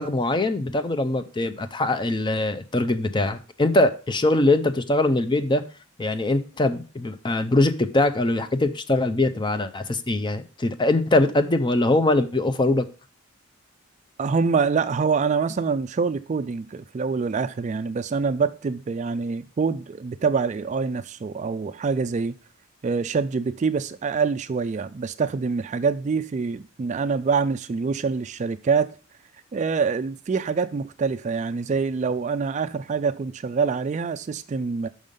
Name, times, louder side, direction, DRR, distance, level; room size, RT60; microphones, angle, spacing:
voice 1, 0.0-5.6 6.0-12.8, left 2 dB, 20° left, 0.5 m, -22 dB
voice 2, 14.2-22.4 22.8-28.9 29.5-34.9, right 5 dB, 35° right, 0.3 m, -25 dB
6.3 x 5.5 x 5.2 m
head